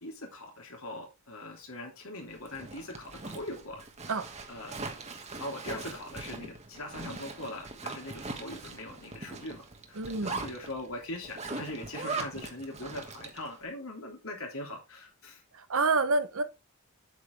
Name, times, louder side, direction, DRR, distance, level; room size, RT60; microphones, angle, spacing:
voice 1, 0.0-4.2 4.5-4.8 5.4-15.4, left 1 dB, 70° left, 3.2 m, -41 dB
Zipper (clothing), 2.3-13.5, right 3 dB, 30° right, 1.3 m, -41 dB
voice 2, 10.0-10.4 15.5-16.4, right 3 dB, 65° right, 1.0 m, -28 dB
8.1 x 7.3 x 3.3 m
head